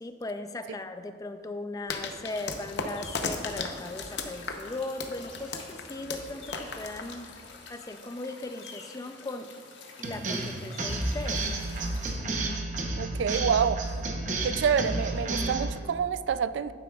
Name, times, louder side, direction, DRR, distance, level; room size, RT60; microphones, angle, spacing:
voice 1, 0.0-7.3 7.7-9.5 10.0-11.4 14.4-14.6, left 2 dB, 20° left, 9 dB, 0.4 m, -38 dB
sound 1, 1.9-7.7, left 4 dB, 70° left, 0.8 m, -36 dB
sound 2, 2.3-12.2, left 4 dB, 85° left, 1.3 m, -48 dB
sound 3, 10.0-15.8, right 2 dB, 45° right, 0.9 m, -31 dB
voice 2, 13.0-13.8 14.4-16.7, right 7 dB, 85° right, 14 dB, 0.3 m, -27 dB
11.5 x 9.5 x 2.4 m, 2.1 s
head